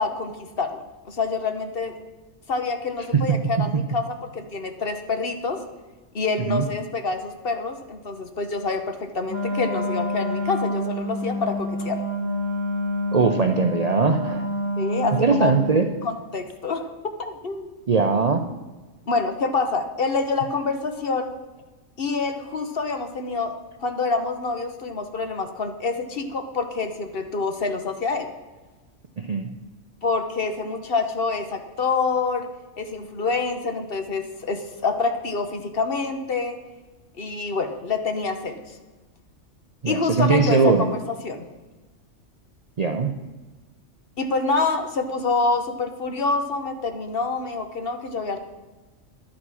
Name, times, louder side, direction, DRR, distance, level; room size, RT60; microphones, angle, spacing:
voice 1, 0.0-1.9 2.5-5.6 6.1-12.0 14.8-15.5 16.0-16.9 17.2-17.7 19.1-21.3 22.0-23.5 23.8-28.3 30.0-32.5 32.8-36.6 37.2-38.7 39.9-41.0 41.2-41.4 44.2-48.4, left 4 dB, 50° left, 7 dB, 1.1 m, -26 dB
Wind instrument woodwind instrument, 9.3-15.9, left 1 dB, 15° left, 1.8 m, -27 dB
voice 2, 13.1-14.5 15.2-15.9 17.9-18.4 29.2-29.5 39.8-40.9 42.8-43.1, right 5 dB, 45° right, 5 dB, 0.5 m, -20 dB
11.0 x 8.6 x 6.2 m, 1.2 s
omnidirectional pair, 1.4 m